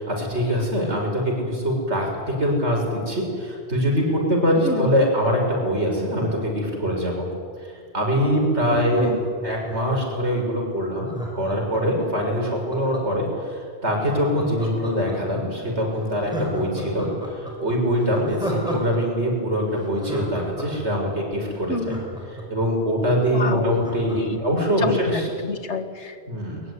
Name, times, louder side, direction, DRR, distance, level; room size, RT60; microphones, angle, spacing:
voice 1, 0.0-7.2 7.6-9.1 9.4-17.0 17.6-21.9 22.5-25.2 26.3-26.6, equal, 80° right, 0 dB, 6.4 m, -23 dB
voice 2, 4.6-5.0 8.7-9.2 21.7-22.0 23.3-23.7 24.1-24.4 24.8-26.2, left 3 dB, 80° left, 9 dB, 2.0 m, -29 dB
Laughter, 8.5-10.2 11.1-13.3 14.0-15.4 15.8-15.9 16.2-19.0 19.3-19.4 19.7-22.7 23.1-23.2 23.4-25.1 25.5-25.6, equal, 5° right, 5.6 m, -33 dB
22.0 x 21.5 x 9.8 m, 2.1 s
omnidirectional pair, 1.1 m